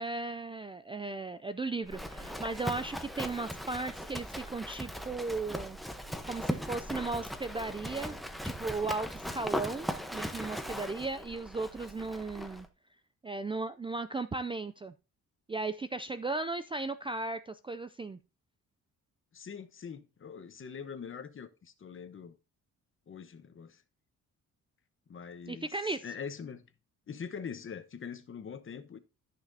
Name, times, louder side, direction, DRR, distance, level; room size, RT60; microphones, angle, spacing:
voice 1, 0.0-5.8 6.2-8.2 8.4-12.7 13.2-14.9 15.5-18.2 25.5-26.1, right 3 dB, 15° right, 0.4 m, -36 dB
Livestock farm animals working animals, 1.9-12.7, equal, ahead, 0.9 m, -39 dB
voice 2, 19.3-22.3 23.1-23.8 25.1-25.7 26.0-26.7 27.1-29.0, left 6 dB, 40° left, 1.0 m, -43 dB
13.5 x 5.8 x 2.7 m
cardioid pair, 115°, 32 cm